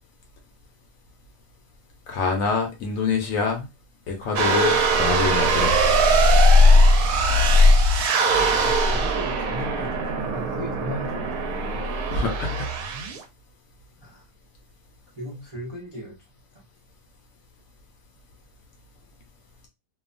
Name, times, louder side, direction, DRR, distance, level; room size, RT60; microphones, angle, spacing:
voice 1, 2.1-3.7 4.1-5.8 12.1-12.7, left 4 dB, 65° left, 0.9 m, -25 dB
sound 1, 4.4-13.2, equal, 70° right, 1.0 m, -19 dB
voice 2, 8.3-12.2 14.0-14.2 15.1-16.2 16.5-16.7, left 1 dB, 50° right, 0.4 m, -37 dB
2.7 x 2.3 x 2.5 m
omnidirectional pair, 1.8 m